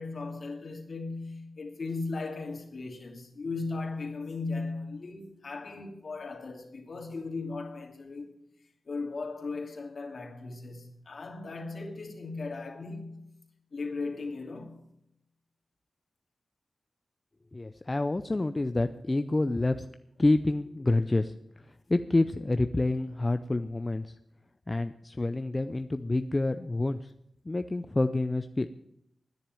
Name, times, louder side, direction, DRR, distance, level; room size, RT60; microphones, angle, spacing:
voice 1, 0.0-8.4 8.9-13.3 13.7-14.8, left 3 dB, 55° left, 2.7 m, -37 dB
voice 2, 17.5-19.9 20.2-24.1 24.7-27.1 27.5-28.7, left 2 dB, 25° left, 0.5 m, -28 dB
10.5 x 10.0 x 9.0 m
wide cardioid pair, 95°, 0 cm